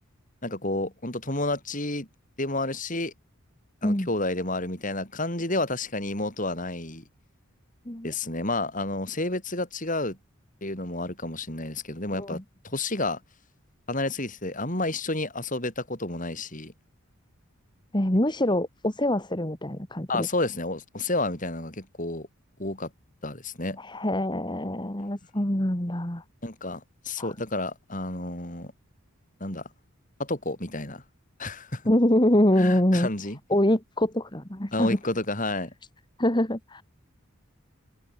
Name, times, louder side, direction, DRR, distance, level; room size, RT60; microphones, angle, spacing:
voice 1, 0.4-2.1 2.4-3.1 3.8-7.0 8.0-10.2 10.6-13.2 13.9-16.7 20.1-22.3 22.6-22.9 23.2-23.8 26.4-28.7 29.4-29.7 30.2-31.0 31.4-31.8 32.6-33.4 34.7-35.7, left 2 dB, 40° left, 7.5 m, -30 dB
voice 2, 17.9-20.3 23.8-26.2 27.2-27.3 31.9-33.1 33.5-35.0 36.2-36.8, left 1 dB, 20° left, 2.2 m, -24 dB
head